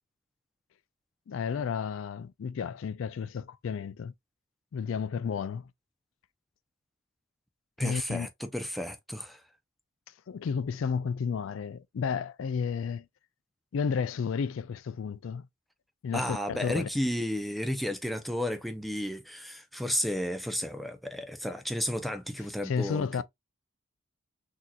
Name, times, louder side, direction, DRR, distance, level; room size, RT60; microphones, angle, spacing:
voice 1, 1.3-4.1 4.7-5.7 7.8-8.3 10.3-13.1 13.7-15.5 16.0-16.9 22.6-23.2, left 6 dB, 70° left, 0.3 m, -32 dB
voice 2, 7.8-9.4 16.1-23.2, equal, ahead, 0.5 m, -33 dB
6.2 x 2.8 x 2.3 m
head